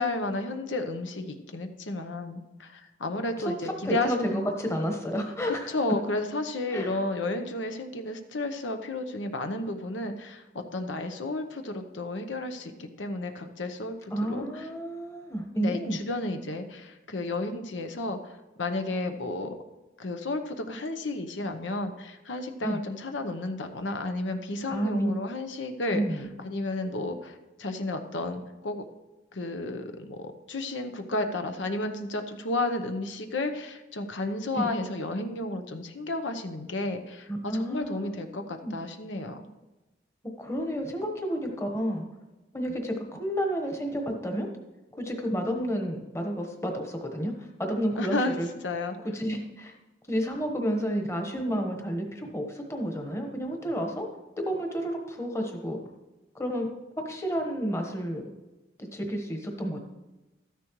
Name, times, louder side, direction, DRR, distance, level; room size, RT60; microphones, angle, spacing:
voice 1, 0.0-4.5 5.5-14.7 15.5-19.5 20.0-28.9 29.3-39.5 48.0-48.3 48.6-49.0, left 2 dB, 85° left, 7 dB, 0.9 m, -32 dB
voice 2, 3.4-5.7 6.7-7.0 14.1-16.0 22.6-22.8 24.7-25.1 25.9-26.3 34.6-34.7 37.4-38.3 38.6-38.7 40.4-42.1 42.5-44.5 45.0-48.5 49.1-49.7 50.1-54.1 54.4-55.8 56.4-56.7 57.0-58.2 58.8-59.8, equal, 15° left, 3 dB, 1.2 m, -30 dB
13.0 x 10.0 x 3.1 m, 1.1 s
head